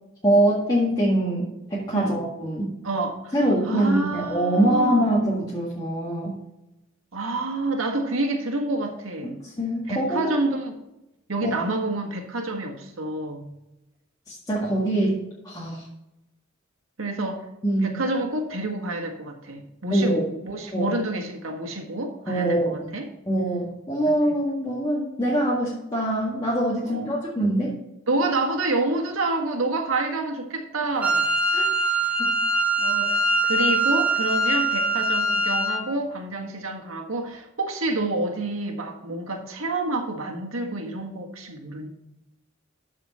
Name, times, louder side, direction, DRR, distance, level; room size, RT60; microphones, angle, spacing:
voice 1, 0.2-2.7 3.3-6.3 9.2-10.4 11.4-11.6 14.3-15.2 15.4-15.9 17.6-17.9 19.9-20.3 20.7-20.9 22.3-22.9 23.3-27.7 30.8-30.9 31.5-31.6 32.2-32.3, right 1 dB, 20° left, -7 dB, 1.9 m, -24 dB
voice 2, 2.8-3.3 3.6-5.1 7.1-9.4 9.9-10.8 11.3-13.5 17.0-17.4 17.8-23.1 26.8-27.1 28.1-31.3 32.8-41.9, right 2 dB, 80° right, 2 dB, 1.7 m, -28 dB
Wind instrument woodwind instrument, 31.0-35.8, right 2 dB, 5° right, 1.8 m, -23 dB
12.5 x 5.0 x 4.2 m, 0.94 s
head